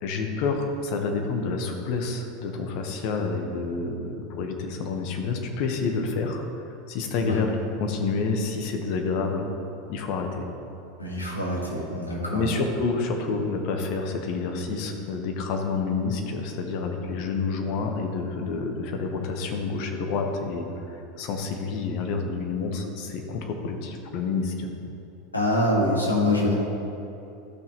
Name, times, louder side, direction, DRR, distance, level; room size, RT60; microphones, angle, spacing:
voice 1, 0.0-9.4 9.9-10.5 12.3-24.7, left 4 dB, 50° left, 3 dB, 1.2 m, -28 dB
voice 2, 11.0-12.4 25.3-26.5, left 1 dB, 90° left, -4 dB, 1.8 m, -25 dB
13.5 x 5.8 x 3.1 m, 2.9 s
figure-of-eight pair, 85°, 0 cm